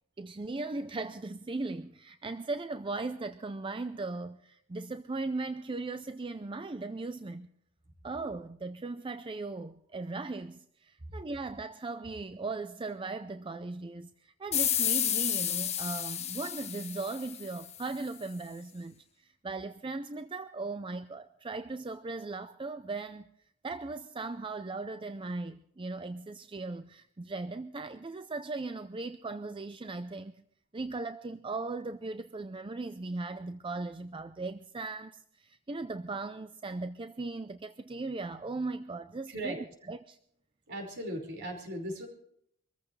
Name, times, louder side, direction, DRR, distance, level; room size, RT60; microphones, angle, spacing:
voice 1, 0.2-7.5 8.0-23.3 23.6-30.4 30.7-40.2, right 3 dB, 25° right, 0.5 m, -38 dB
sound 1, 14.5-17.8, left 9 dB, 30° left, 1.2 m, -31 dB
voice 2, 40.7-42.1, right 1 dB, 55° right, 5.0 m, -37 dB
24.5 x 14.5 x 3.2 m
head